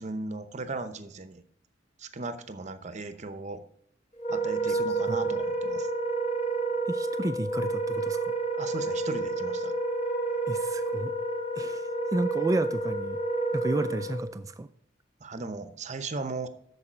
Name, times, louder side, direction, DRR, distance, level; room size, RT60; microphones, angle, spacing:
voice 1, 0.0-1.4 2.0-3.6 4.3-5.9 8.5-9.7 15.2-16.5, right 3 dB, 40° right, 11 dB, 0.7 m, -37 dB
Wind instrument woodwind instrument, 4.2-14.3, right 2 dB, 35° left, 1.4 m, -30 dB
voice 2, 6.9-8.3 10.5-11.1 11.6-13.2 13.5-14.7, right 2 dB, 20° right, 11 dB, 0.3 m, -32 dB
8.5 x 6.9 x 5.0 m, 0.68 s
head